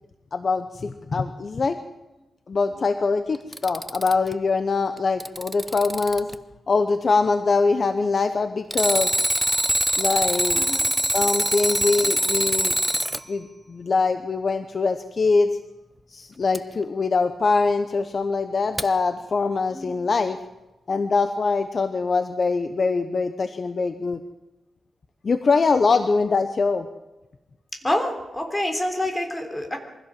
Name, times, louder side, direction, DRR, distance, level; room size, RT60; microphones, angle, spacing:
voice 1, 0.3-1.8 2.5-6.3 6.7-9.1 10.0-10.7 11.0-12.8 13.3-15.5 16.1-20.4 20.9-24.2 25.2-26.9, left 4 dB, 40° left, 9 dB, 0.9 m, -23 dB
Alarm, 3.3-4.3 5.0-6.3 8.7-13.2 16.5-16.6 18.8-18.9, right 1 dB, 5° right, 0.7 m, -23 dB
voice 2, 10.5-10.9 19.7-20.0 27.8-29.8, left 1 dB, 10° left, 4 dB, 3.3 m, -27 dB
23.5 x 16.0 x 7.6 m, 1.0 s
wide cardioid pair, 155°, 0 cm